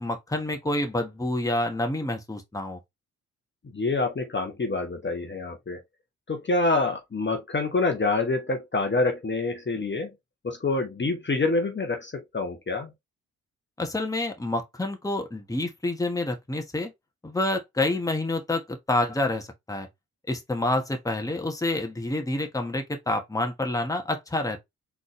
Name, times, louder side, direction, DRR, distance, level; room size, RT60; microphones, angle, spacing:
voice 1, 0.0-2.8 13.8-16.9 17.2-19.9 20.3-24.6, left 2 dB, 10° left, 1.3 m, -28 dB
voice 2, 3.7-5.8 6.3-10.1 10.4-12.9, left 3 dB, 25° left, 1.2 m, -26 dB
4.0 x 3.5 x 3.1 m
hypercardioid pair, 40°, 41 cm